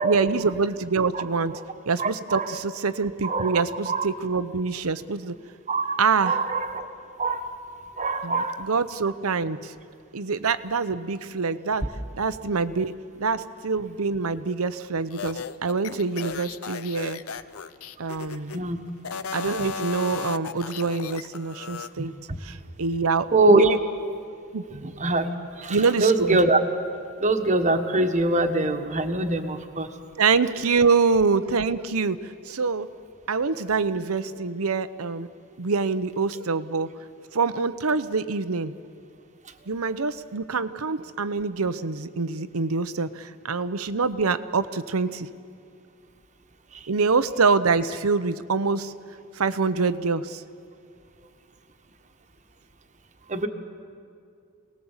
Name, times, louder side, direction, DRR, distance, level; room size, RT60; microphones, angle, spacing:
voice 1, 0.0-1.6 1.9-5.3 6.0-6.4 8.2-9.7 10.1-11.8 12.1-17.2 18.0-18.6 19.3-22.1 22.4-23.8 24.5-24.6 25.7-26.4 30.2-32.9 33.3-35.3 35.6-36.9 37.3-38.7 39.7-45.3 46.9-48.9 49.3-50.4, right 4 dB, 80° right, 13 dB, 0.8 m, -25 dB
voice 2, 2.0-2.5 3.2-4.0 5.7-6.0 6.2-6.9 7.2-7.5 8.0-8.6 18.5-18.8 22.0-22.4 23.3-23.7 24.7-25.3 25.6-26.6 27.2-29.9 46.7-46.9 53.3-53.5, right 2 dB, 35° right, 6 dB, 1.3 m, -23 dB
sound 1, 15.1-18.6 19.0-21.9, left 6 dB, 80° left, 0.7 m, -35 dB
27.0 x 19.0 x 7.3 m, 2.4 s
head